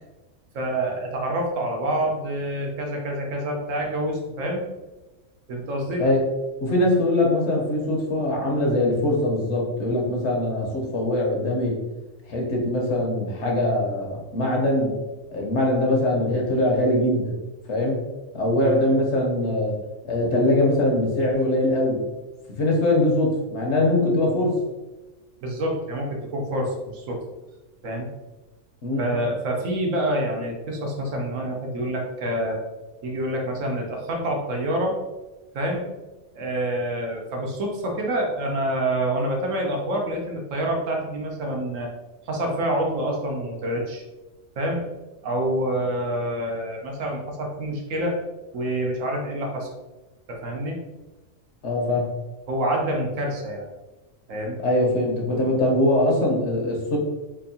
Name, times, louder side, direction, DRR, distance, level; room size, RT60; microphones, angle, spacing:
voice 1, 0.5-4.6 5.5-6.0 25.4-27.2 27.8-28.1 29.0-32.6 33.0-35.0 35.5-35.9 36.3-41.9 42.3-44.0 44.6-44.8 45.2-48.2 48.5-49.7 50.3-50.8 52.5-53.6 54.3-54.6, right 1 dB, 75° right, 1 dB, 1.1 m, -27 dB
voice 2, 6.6-11.8 12.3-14.9 15.3-17.3 17.7-18.0 18.3-19.7 20.0-22.0 22.5-24.6 28.8-29.1 51.6-52.1 54.6-57.0, left 1 dB, 60° left, -1 dB, 1.1 m, -22 dB
4.5 x 2.6 x 2.7 m, 1.1 s
omnidirectional pair, 1.4 m